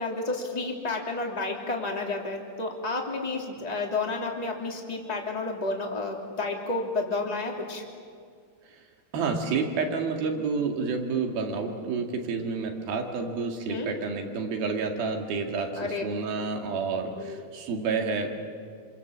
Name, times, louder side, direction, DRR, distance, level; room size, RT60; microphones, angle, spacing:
voice 1, 0.0-7.8 13.7-13.9 15.8-16.0 17.2-17.4, left 3 dB, 10° left, 0 dB, 2.5 m, -31 dB
voice 2, 9.1-18.3, right 4 dB, 85° right, 3 dB, 4.1 m, -29 dB
27.0 x 25.5 x 7.5 m, 2.1 s
omnidirectional pair, 4.1 m